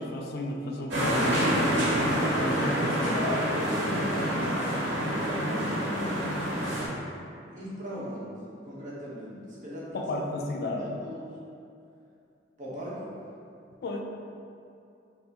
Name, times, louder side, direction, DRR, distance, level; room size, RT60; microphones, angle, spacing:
voice 1, 0.0-1.7 2.4-3.4 9.9-11.0 13.8-14.0, left 2 dB, 55° left, 1 dB, 0.3 m, -33 dB
sound 1, 0.9-6.9, equal, 80° right, 1.0 m, -27 dB
voice 2, 2.1-4.7 5.2-10.0 10.8-11.4 12.6-13.1, equal, 45° right, -8 dB, 1.0 m, -39 dB
5.3 x 2.1 x 2.8 m, 2.5 s
head